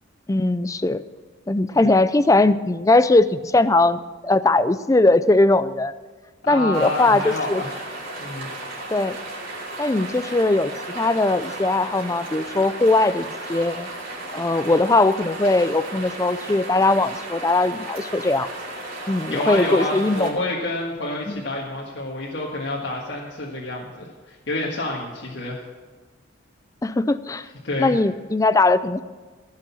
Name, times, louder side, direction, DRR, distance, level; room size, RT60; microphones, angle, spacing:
voice 1, 0.3-1.0 1.5-5.9 6.5-7.6 8.9-9.2 9.8-13.9 14.3-18.5 19.1-20.3 21.3-21.4 26.8-27.5 27.8-29.0, left 2 dB, 15° left, 14 dB, 0.4 m, -20 dB
voice 2, 6.4-7.8 8.2-8.5 19.3-25.6 27.6-28.0, left 1 dB, 65° left, -3 dB, 1.6 m, -28 dB
sound 1, 6.7-20.3, right 1 dB, 50° right, 3.3 m, -34 dB
15.5 x 6.5 x 7.2 m, 1.4 s
head